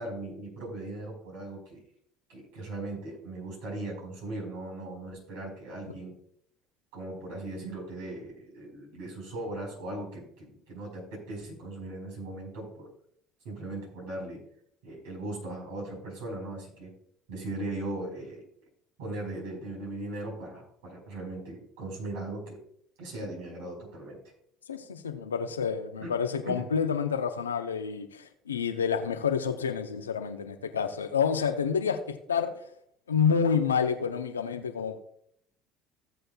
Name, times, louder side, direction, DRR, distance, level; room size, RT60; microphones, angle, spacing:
voice 1, 0.0-1.8 2.3-6.1 6.9-12.9 13.4-14.4 14.8-16.9 17.3-18.4 19.0-22.6 23.0-24.2 26.0-26.2 26.5-26.7, right 2 dB, 75° right, -1 dB, 4.5 m, -38 dB
voice 2, 24.7-32.5 33.1-35.0, left 6 dB, 90° left, 8 dB, 0.7 m, -28 dB
16.0 x 7.7 x 2.3 m, 0.68 s
hypercardioid pair, 65°, 0 cm